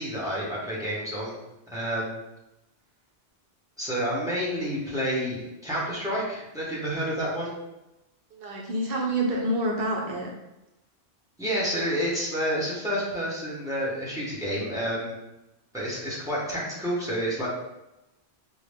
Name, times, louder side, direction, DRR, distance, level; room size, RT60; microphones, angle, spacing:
voice 1, 0.0-1.4 1.7-2.2 3.8-7.5 11.4-15.1 15.7-17.5, equal, 5° right, -6 dB, 0.9 m, -29 dB
voice 2, 8.3-10.3, right 1 dB, 65° right, 0 dB, 0.7 m, -27 dB
3.8 x 2.2 x 3.4 m, 0.94 s
omnidirectional pair, 1.1 m